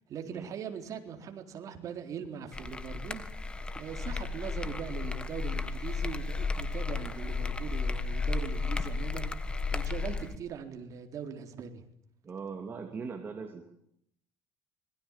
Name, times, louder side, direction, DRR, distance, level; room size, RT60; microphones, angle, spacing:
voice 1, 0.1-3.2 3.8-9.3 9.7-11.8, right 7 dB, 40° right, 6 dB, 4.0 m, -41 dB
sound 1, 2.5-10.4, left 4 dB, 10° left, 1.5 m, -33 dB
voice 2, 12.2-13.7, right 5 dB, 25° right, 3 dB, 2.9 m, -40 dB
26.5 x 22.5 x 7.5 m, 0.70 s
cardioid pair, 150°, 8 cm